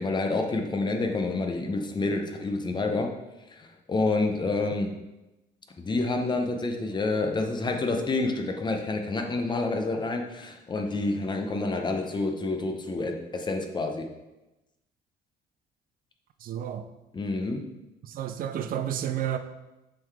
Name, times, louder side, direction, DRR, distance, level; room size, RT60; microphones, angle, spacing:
voice 1, 0.0-3.1 3.5-4.9 5.8-14.1 17.1-17.6, left 3 dB, 25° left, 4 dB, 0.7 m, -28 dB
voice 2, 16.4-16.9 18.1-19.4, right 10 dB, 55° right, 9 dB, 0.5 m, -31 dB
7.6 x 3.8 x 3.5 m, 1.0 s
cardioid pair, 110°, 17 cm